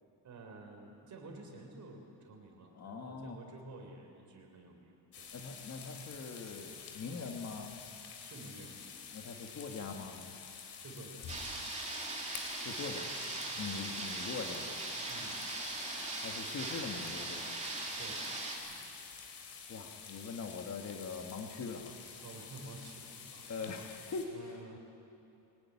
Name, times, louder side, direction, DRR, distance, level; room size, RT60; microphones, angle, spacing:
voice 1, 0.2-5.3 8.2-8.8 10.8-11.3 13.5-13.8 15.1-15.4 18.0-18.2 22.2-23.9 24.3-24.8, right 3 dB, 40° right, 3 dB, 3.9 m, -51 dB
voice 2, 2.8-3.4 5.3-7.8 9.1-10.3 12.6-13.1 13.6-14.7 16.2-17.5 19.7-22.0 23.5-24.5, left 4 dB, 35° left, 3 dB, 1.6 m, -42 dB
sound 1, 5.1-24.3, left 6 dB, 60° left, 3.5 m, -49 dB
sound 2, 11.3-18.6, right 2 dB, 15° right, 3.0 m, -40 dB
22.5 x 17.5 x 9.7 m, 2.8 s
cardioid pair, 170°, 44 cm